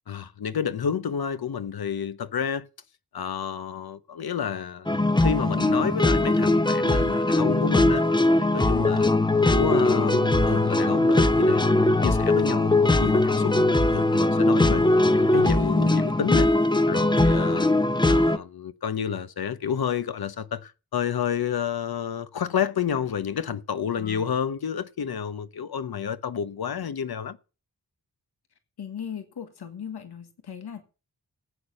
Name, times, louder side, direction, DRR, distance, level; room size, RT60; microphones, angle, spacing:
voice 1, 0.1-2.7 3.1-4.9 5.2-8.0 8.4-9.1 9.4-14.8 15.1-16.5 16.9-17.7 18.1-27.4, left 8 dB, 70° left, 1.0 m, -30 dB
sound 1, 4.9-18.4, left 2 dB, 10° left, 0.7 m, -21 dB
voice 2, 8.7-9.1 14.7-14.9 23.9-24.3 28.8-30.8, left 8 dB, 90° left, 1.7 m, -37 dB
14.0 x 9.0 x 6.5 m
wide cardioid pair, 140°, 38 cm